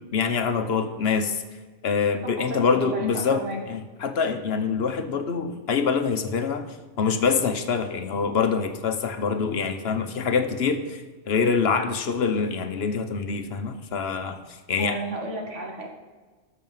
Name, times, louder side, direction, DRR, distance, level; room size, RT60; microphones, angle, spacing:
voice 1, 0.0-1.4 1.8-15.0, left 5 dB, 60° left, 8 dB, 1.0 m, -25 dB
voice 2, 2.4-3.6 14.8-15.9, right 1 dB, 80° right, 0 dB, 2.1 m, -33 dB
13.0 x 6.5 x 5.5 m, 1.4 s
omnidirectional pair, 1.2 m